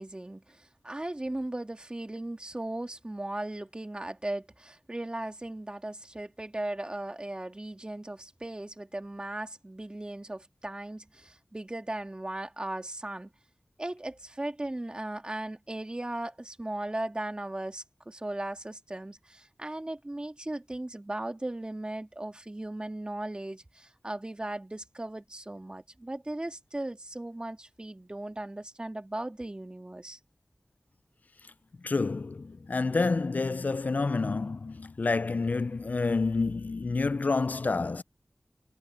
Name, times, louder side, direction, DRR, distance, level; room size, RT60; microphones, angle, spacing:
voice 1, 0.0-13.3 13.8-30.2, right 1 dB, 35° right, 3.1 m, -37 dB
voice 2, 31.8-38.0, left 3 dB, 65° left, 0.5 m, -28 dB
wide cardioid pair, 40°, 3 cm